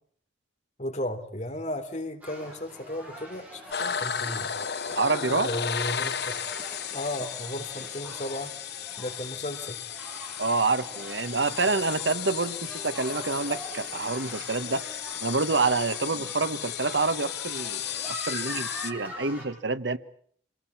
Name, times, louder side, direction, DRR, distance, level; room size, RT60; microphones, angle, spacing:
voice 1, 0.8-4.5 5.3-6.3 6.9-8.5 9.0-9.7, left 1 dB, 40° left, 3.5 m, -34 dB
sound 1, 2.2-19.4, equal, 10° right, 7.5 m, -44 dB
sound 2, 3.7-18.9, left 8 dB, 60° left, 1.1 m, -34 dB
voice 2, 5.0-5.5 10.4-14.9 15.2-20.0, right 3 dB, 80° right, 1.3 m, -27 dB
27.5 x 19.0 x 8.7 m
head